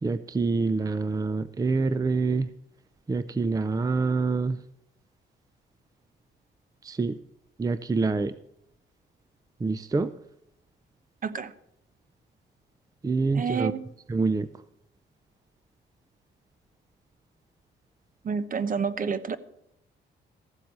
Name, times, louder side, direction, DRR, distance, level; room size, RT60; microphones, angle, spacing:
voice 1, 0.0-2.5 3.1-4.6 6.8-7.2 7.6-8.3 9.6-10.1 13.0-13.7 14.1-14.5, right 4 dB, 20° right, 14 dB, 0.5 m, -26 dB
voice 2, 11.2-11.5 13.3-13.8 18.2-19.4, right 6 dB, 45° right, 14 dB, 1.0 m, -29 dB
14.5 x 7.6 x 6.7 m, 0.78 s
cardioid pair, 90°, 20 cm